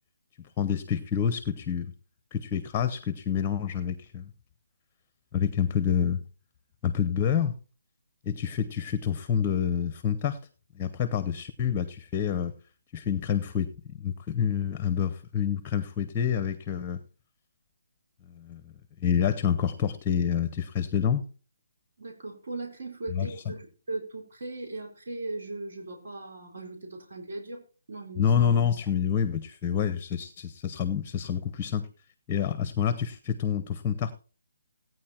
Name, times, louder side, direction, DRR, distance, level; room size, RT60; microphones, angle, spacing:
voice 1, 0.6-1.9 2.3-4.3 5.3-6.2 6.8-7.5 8.3-10.4 10.7-12.5 12.9-17.0 18.3-18.7 19.0-21.2 23.1-23.3 28.2-31.9 32.3-34.1, left 8 dB, 15° left, 12 dB, 0.8 m, -27 dB
voice 2, 22.0-27.6 27.9-28.4, right 2 dB, 60° right, 1 dB, 4.2 m, -38 dB
17.0 x 9.3 x 4.4 m, 0.38 s
hypercardioid pair, 170°, 0 cm